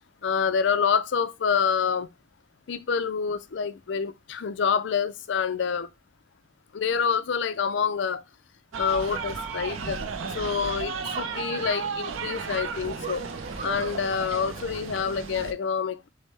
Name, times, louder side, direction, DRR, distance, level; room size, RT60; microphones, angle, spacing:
voice 1, 0.2-2.1 2.7-5.9 6.7-8.2 8.8-10.1 10.3-13.3 13.6-16.1, left 6 dB, 70° left, 0.4 m, -27 dB
sound 1, 8.7-15.5, right 5 dB, 90° right, 0.5 m, -34 dB
sound 2, 9.1-15.5, right 2 dB, 35° right, 0.6 m, -42 dB
6.2 x 2.1 x 3.2 m
head